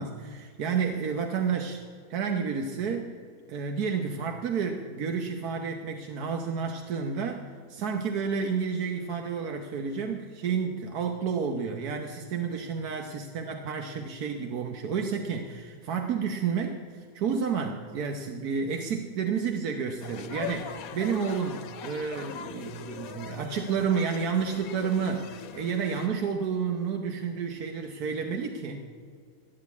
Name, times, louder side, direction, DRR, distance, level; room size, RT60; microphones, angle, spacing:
voice 1, 0.0-1.8 2.1-3.1 3.5-28.8, right 6 dB, 85° right, 3 dB, 1.5 m, -30 dB
sound 1, 20.0-26.1, left 8 dB, 75° left, 1.2 m, -41 dB
14.0 x 9.8 x 8.4 m, 2.1 s
omnidirectional pair, 1.6 m